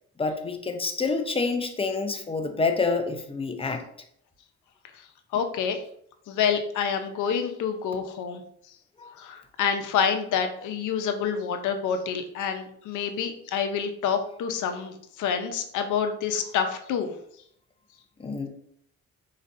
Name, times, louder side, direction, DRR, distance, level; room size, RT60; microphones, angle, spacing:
voice 1, 0.2-3.8 9.0-9.1 18.2-18.5, left 4 dB, 20° left, 5 dB, 0.6 m, -27 dB
voice 2, 5.3-5.8 6.3-8.4 9.2-17.1, left 7 dB, 80° left, 6 dB, 0.7 m, -27 dB
4.1 x 4.0 x 2.6 m, 0.67 s
cardioid pair, 90°, 30 cm